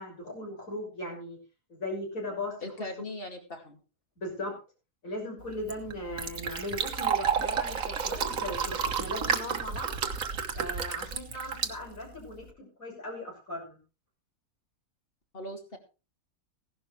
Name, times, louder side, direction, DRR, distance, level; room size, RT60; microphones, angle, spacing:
voice 1, 0.0-1.4 1.7-2.9 4.2-4.6 5.0-10.0 10.5-13.8, left 1 dB, 65° left, 0 dB, 6.4 m, -38 dB
voice 2, 2.6-3.8 11.3-11.5 15.3-15.8, left 1 dB, 40° left, 4 dB, 2.6 m, -39 dB
Fill (with liquid), 5.4-12.5, right 6 dB, 65° right, 1.6 m, -32 dB
16.5 x 11.5 x 3.2 m, 0.32 s
omnidirectional pair, 1.5 m